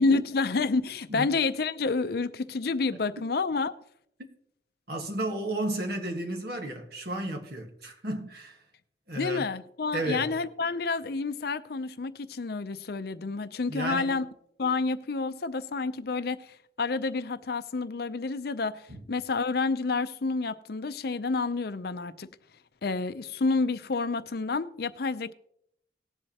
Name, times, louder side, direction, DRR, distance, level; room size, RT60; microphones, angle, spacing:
voice 1, 0.0-3.7 9.2-14.2 14.6-22.3 22.8-25.3, left 3 dB, 60° left, 0.5 m, -29 dB
voice 2, 4.9-8.6 9.1-9.4 9.9-10.4 13.7-14.3 18.9-19.0, right 1 dB, 60° right, 1.4 m, -33 dB
18.5 x 7.7 x 2.9 m
head